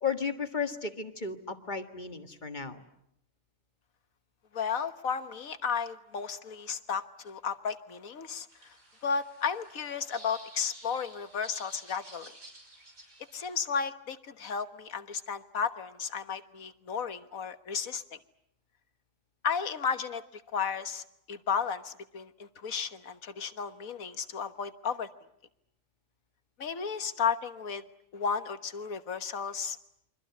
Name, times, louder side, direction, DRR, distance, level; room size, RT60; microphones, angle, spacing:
voice 1, 0.0-2.8, left 5 dB, 35° left, 7 dB, 1.7 m, -34 dB
voice 2, 4.5-8.5 9.0-12.3 13.3-18.2 19.4-25.1 26.6-27.8 28.1-29.8, left 6 dB, 85° left, 10 dB, 1.7 m, -33 dB
sound 1, 8.5-13.5, right 2 dB, 85° right, 6.0 m, -52 dB
29.0 x 24.5 x 8.3 m, 0.77 s
omnidirectional pair, 1.4 m